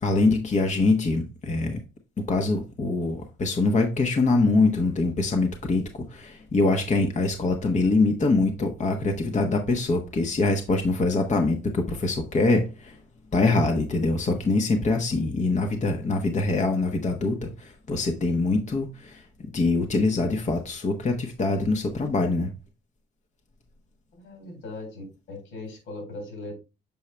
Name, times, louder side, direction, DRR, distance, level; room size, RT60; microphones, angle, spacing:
voice 1, 0.0-1.8 2.3-13.0 13.3-19.2 19.5-22.5, left 3 dB, 35° left, 1.1 m, -24 dB
voice 2, 24.2-26.5, left 2 dB, 85° left, 4.3 m, -39 dB
7.1 x 4.6 x 3.3 m
cardioid pair, 90°, 20 cm